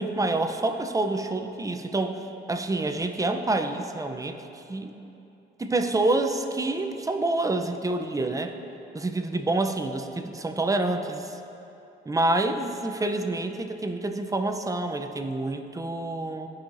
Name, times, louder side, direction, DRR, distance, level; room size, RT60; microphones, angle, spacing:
voice 1, 0.0-2.2 2.5-5.0 5.6-8.5 8.9-11.4 12.1-16.5, right 2 dB, 15° right, 6 dB, 0.6 m, -27 dB
14.5 x 5.7 x 2.6 m, 2.9 s
cardioid pair, 90°, 20 cm